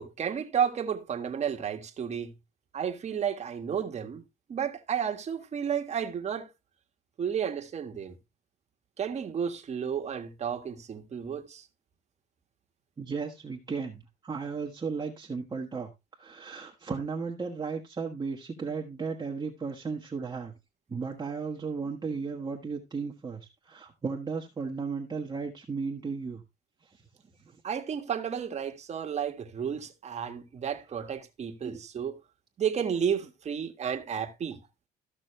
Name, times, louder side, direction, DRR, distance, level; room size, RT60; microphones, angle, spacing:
voice 1, 0.0-2.3 2.7-4.2 4.5-6.5 7.2-8.1 9.0-11.6 27.6-32.1 32.6-34.6, right 8 dB, 40° right, 1.6 m, -32 dB
voice 2, 13.0-15.9 16.2-20.5 20.9-23.4 23.7-26.4 31.6-31.8, right 5 dB, 25° right, 1.5 m, -35 dB
14.0 x 6.1 x 3.3 m
cardioid pair, 110°, 17 cm